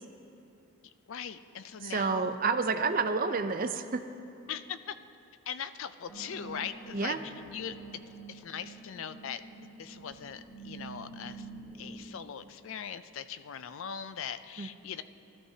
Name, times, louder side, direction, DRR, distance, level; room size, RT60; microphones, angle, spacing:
voice 1, 0.8-2.4 4.5-4.9 5.5-8.0 8.3-9.4 9.8-11.5 11.8-15.0, left 7 dB, 65° left, 12 dB, 0.4 m, -40 dB
voice 2, 1.8-4.0 6.9-7.2 14.6-14.7, right 4 dB, 40° right, 8 dB, 0.5 m, -29 dB
sound 1, 6.1-12.0, right 3 dB, 10° left, 3.1 m, -47 dB
18.0 x 13.0 x 2.7 m, 2.7 s
head